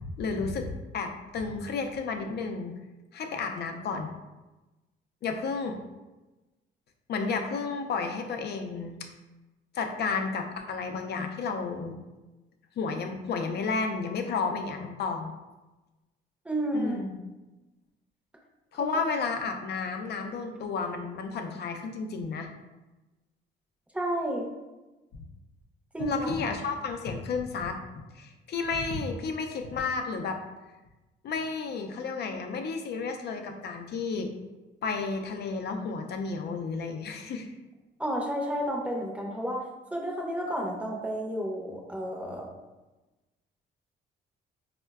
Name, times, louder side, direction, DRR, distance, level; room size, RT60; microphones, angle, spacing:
voice 1, 0.0-2.7 3.1-4.1 5.2-5.8 7.1-9.1 9.7-12.0 12.8-15.3 16.7-17.2 18.7-22.5 25.1-25.2 26.0-27.8 28.1-30.4 31.2-34.3 34.8-37.5, left 4 dB, 55° left, 5 dB, 0.5 m, -32 dB
voice 2, 16.4-17.0 18.8-18.9 23.9-24.5 25.9-26.5 38.0-39.6 39.9-42.5, equal, 5° right, -1 dB, 0.6 m, -31 dB
4.3 x 2.1 x 2.3 m, 1.1 s
cardioid pair, 90°, 20 cm